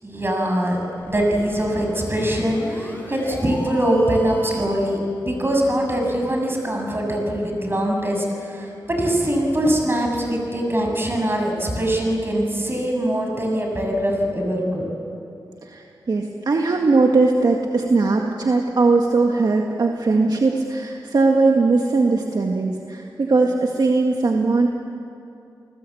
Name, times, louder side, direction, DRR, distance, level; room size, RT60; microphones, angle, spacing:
voice 1, 0.0-0.8 1.1-14.8, right 1 dB, 30° right, 2 dB, 6.9 m, -22 dB
sound 1, 0.9-4.9, equal, 25° left, 6.2 m, -36 dB
voice 2, 15.6-24.7, right 3 dB, 55° right, 1 dB, 1.8 m, -19 dB
29.5 x 19.5 x 8.6 m, 2.6 s
cardioid pair, 70°, 8 cm